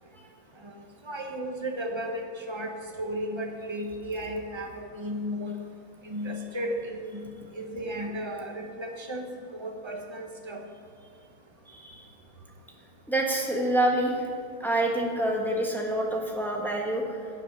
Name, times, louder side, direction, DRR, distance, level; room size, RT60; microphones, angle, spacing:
voice 1, 1.0-2.7 3.0-5.6 6.0-9.2 9.5-10.6, equal, 35° right, 2 dB, 0.4 m, -34 dB
voice 2, 11.7-12.0 13.1-14.3 14.6-17.2, right 1 dB, ahead, -1 dB, 1.1 m, -27 dB
11.5 x 7.6 x 6.7 m, 2.2 s
omnidirectional pair, 2.3 m